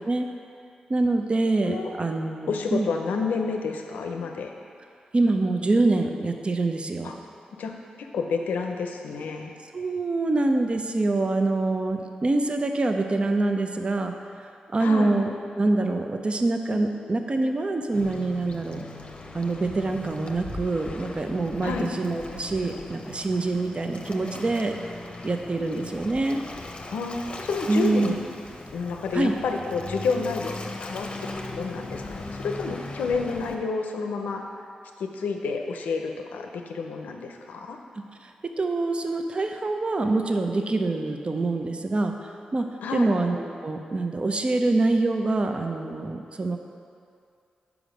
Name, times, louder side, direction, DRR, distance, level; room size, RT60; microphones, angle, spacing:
voice 1, 0.9-2.9 5.1-7.1 9.7-14.1 14.7-18.9 19.3-24.7 25.2-26.4 27.7-28.1 29.1-29.3 38.6-42.1 42.5-42.7 42.9-46.6, right 2 dB, 40° right, 5 dB, 0.6 m, -25 dB
voice 2, 2.5-4.5 7.0-7.1 7.6-7.7 8.0-9.5 14.8-15.1 21.6-21.9 26.9-28.2 28.7-31.1 31.5-34.4 35.0-37.8 42.8-43.1, left 4 dB, 90° left, 3 dB, 0.5 m, -29 dB
Waves surf, 17.9-33.5, left 2 dB, 40° left, 0.7 m, -38 dB
5.0 x 4.9 x 6.3 m, 2.4 s
cardioid pair, 50°, 3 cm